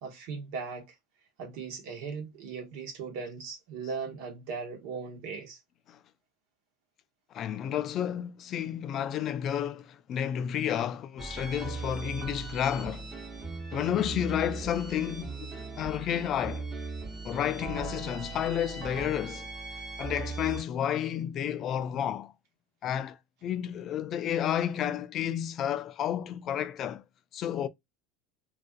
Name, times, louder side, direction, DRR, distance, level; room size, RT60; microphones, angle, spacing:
voice 1, 0.0-0.9 1.4-5.6, right 5 dB, 70° right, 1.0 m, -38 dB
voice 2, 7.3-13.1 13.7-16.7 17.2-19.5 20.0-22.3 22.8-27.0 27.3-27.7, left 10 dB, 45° left, 0.3 m, -31 dB
sound 1, 11.2-20.6, right 3 dB, 25° right, 0.9 m, -39 dB
2.4 x 2.4 x 2.3 m
supercardioid pair, 105°, 0 cm